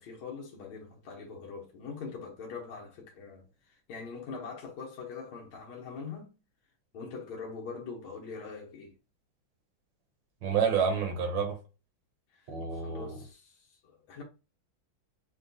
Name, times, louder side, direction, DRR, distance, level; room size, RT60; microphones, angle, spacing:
voice 1, 0.0-6.3 6.9-8.9 12.3-14.2, left 5 dB, 90° left, 1.8 m, -43 dB
voice 2, 10.4-11.6 12.5-13.2, right 6 dB, 70° right, 1.6 m, -29 dB
6.3 x 2.2 x 2.6 m
omnidirectional pair, 2.2 m